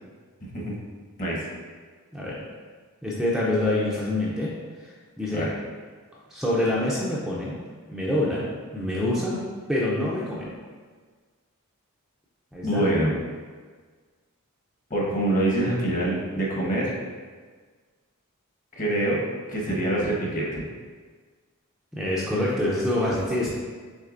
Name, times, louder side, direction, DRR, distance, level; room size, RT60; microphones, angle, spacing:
voice 1, 2.1-2.4 3.0-4.5 5.2-5.5 6.3-7.6 7.9-9.4 9.7-10.5 12.5-12.8 21.9-23.5, left 1 dB, ahead, -6 dB, 0.5 m, -26 dB
voice 2, 12.6-13.1 14.9-16.9 18.8-19.2 19.5-20.6, right 1 dB, 35° left, -4 dB, 1.1 m, -25 dB
6.5 x 3.2 x 2.5 m, 1.5 s
head